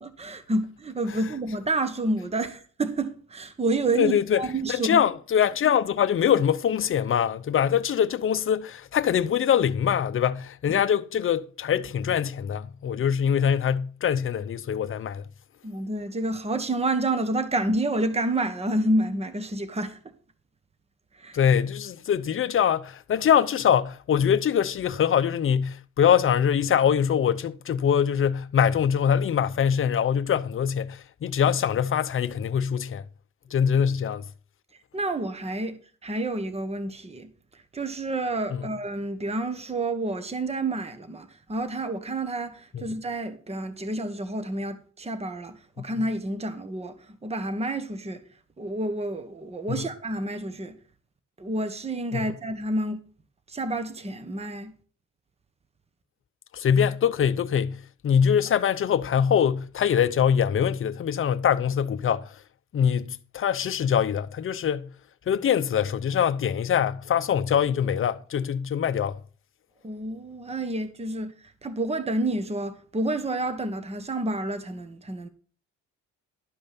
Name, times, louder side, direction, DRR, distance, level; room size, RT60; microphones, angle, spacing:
voice 1, 0.0-5.1 10.7-10.8 15.6-20.0 21.1-21.4 34.9-48.2 48.6-50.8 51.4-53.0 53.5-54.7 69.8-75.3, right 2 dB, 20° right, 1.2 m, -29 dB
voice 2, 4.0-4.4 4.7-15.3 21.3-33.0 33.5-34.2 42.7-42.8 49.7-49.8 52.1-52.3 56.5-62.3 62.7-64.9 65.3-69.2, left 8 dB, 45° left, 0.7 m, -23 dB
12.0 x 5.1 x 5.9 m
cardioid pair, 90°, 30 cm